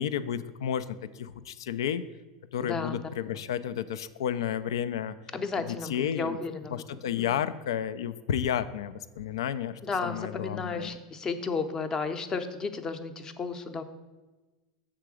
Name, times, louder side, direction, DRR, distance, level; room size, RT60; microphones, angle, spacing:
voice 1, 0.0-2.1 2.5-5.1 5.6-6.4 6.7-10.9, left 9 dB, 90° left, 14 dB, 0.3 m, -32 dB
voice 2, 2.6-2.9 5.3-7.4 9.8-13.8, left 4 dB, 25° left, 9 dB, 0.6 m, -33 dB
6.6 x 3.7 x 6.2 m, 1.2 s
supercardioid pair, 110°, 3 cm